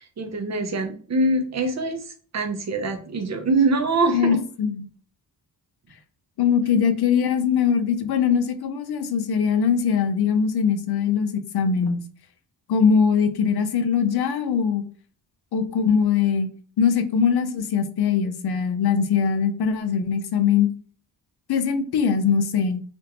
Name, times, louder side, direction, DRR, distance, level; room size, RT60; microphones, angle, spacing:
voice 1, 0.0-4.4, right 2 dB, 40° right, 0.6 m, -24 dB
voice 2, 4.1-4.9 6.4-12.0 12.7-14.8 15.5-16.5 16.8-20.7 21.5-22.8, left 6 dB, 70° left, 0.6 m, -21 dB
3.4 x 2.5 x 2.8 m
wide cardioid pair, 140°, 41 cm